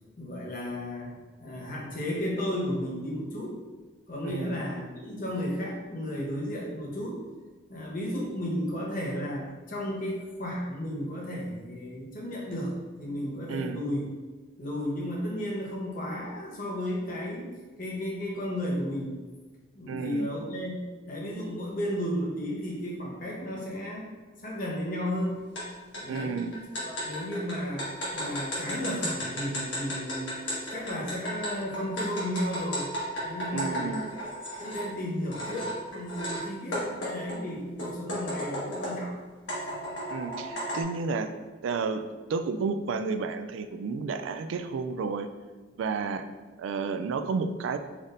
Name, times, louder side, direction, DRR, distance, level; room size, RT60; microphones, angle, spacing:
voice 1, 0.2-3.6 4.1-7.2 7.7-14.1 14.6-17.5 17.8-19.2 19.7-24.1 24.4-25.4 25.9-26.5 26.8-30.4 30.7-32.9 33.2-34.0 34.6-39.2, equal, 45° left, -3 dB, 0.9 m, -33 dB
voice 2, 4.2-4.6 13.5-13.8 19.9-20.3 26.1-26.6 33.5-34.0 40.1-41.3 41.6-42.0 42.3-45.3 45.8-46.3 46.6-47.8, right 4 dB, 80° right, 9 dB, 0.3 m, -31 dB
sound 1, 25.6-25.7 25.9-34.9 35.3-36.4 36.7-39.1 39.5-40.8, equal, 70° left, 1.3 m, -34 dB
4.0 x 3.4 x 2.5 m, 1.3 s
head